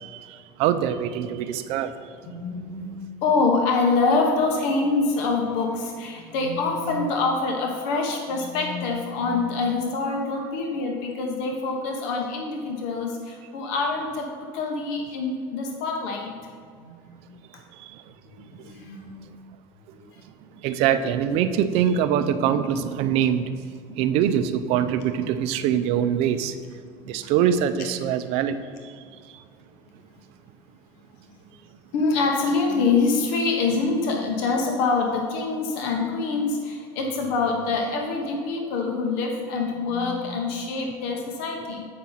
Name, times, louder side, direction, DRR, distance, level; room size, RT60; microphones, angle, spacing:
voice 1, 0.6-1.9 20.6-23.5 24.0-26.5 27.1-28.5, right 9 dB, 60° right, 11 dB, 0.5 m, -23 dB
voice 2, 2.3-14.3 14.5-16.4 16.8-17.1 18.3-19.2 20.0-20.1 23.9-24.0 31.9-41.9, left 3 dB, 70° left, 2 dB, 1.1 m, -25 dB
8.5 x 5.9 x 4.0 m, 2.2 s
cardioid pair, 140°, 11 cm